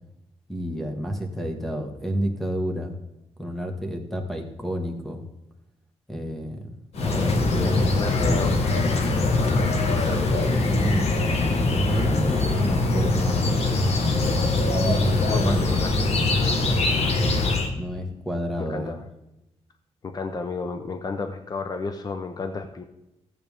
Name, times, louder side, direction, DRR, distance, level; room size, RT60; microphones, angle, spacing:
voice 1, 0.5-2.9 3.4-5.2 6.1-8.0 8.3-8.6 9.9-11.0 11.7-13.8 14.6-15.8 16.5-16.8 17.7-19.0, equal, ahead, 4 dB, 1.5 m, -30 dB
sound 1, 6.9-17.7, left 2 dB, 70° left, 1.4 m, -22 dB
voice 2, 8.0-8.6 15.3-15.9 18.6-19.0 20.0-22.8, left 4 dB, 35° left, 7 dB, 0.8 m, -31 dB
14.5 x 8.0 x 3.6 m, 0.90 s
wide cardioid pair, 115°, 11 cm